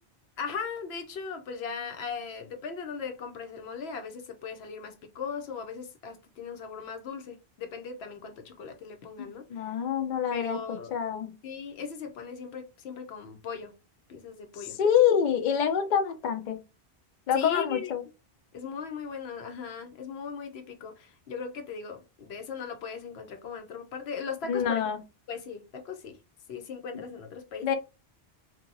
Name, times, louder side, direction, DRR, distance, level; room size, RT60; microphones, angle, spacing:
voice 1, 0.4-9.6 10.3-10.9 11.4-13.7 14.1-14.8 17.3-17.9 18.5-24.8 25.3-26.1 26.5-27.8, left 6 dB, 80° left, 0.9 m, -38 dB
voice 2, 9.2-11.3 14.8-16.6 17.3-18.0 24.5-25.0 27.6-27.8, left 8 dB, 55° left, 0.5 m, -26 dB
2.8 x 2.3 x 2.5 m
omnidirectional pair, 1.1 m